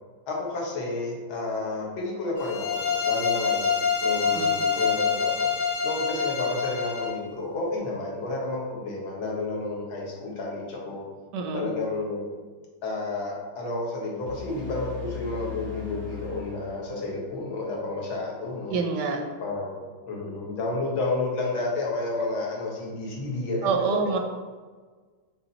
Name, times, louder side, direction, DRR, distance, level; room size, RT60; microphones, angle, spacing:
voice 1, 0.3-5.5 5.8-11.1 11.5-12.3 12.8-18.8 19.4-23.7, left 2 dB, 70° left, -2 dB, 2.1 m, -31 dB
sound 1, 2.4-7.2, left 6 dB, 55° left, 1.4 m, -26 dB
voice 2, 11.3-11.7 18.7-19.2 23.6-24.2, right 5 dB, 70° right, 3 dB, 1.1 m, -26 dB
sound 2, 14.3-17.3, left 8 dB, 25° right, 0.5 m, -39 dB
5.7 x 4.2 x 4.0 m, 1.4 s
omnidirectional pair, 2.3 m